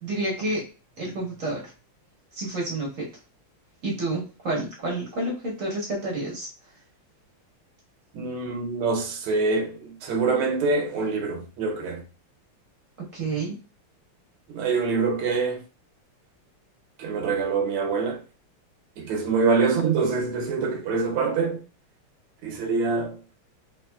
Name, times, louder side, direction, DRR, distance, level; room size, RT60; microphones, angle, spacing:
voice 1, 0.0-0.6 1.0-1.7 2.3-3.1 3.8-6.5 13.0-13.6, right 2 dB, 50° right, 1.1 m, -29 dB
voice 2, 8.1-12.0 14.5-15.6 17.0-18.2 19.0-21.6 22.4-23.3, right 4 dB, 75° right, 1.6 m, -25 dB
3.7 x 3.3 x 2.3 m
omnidirectional pair, 2.4 m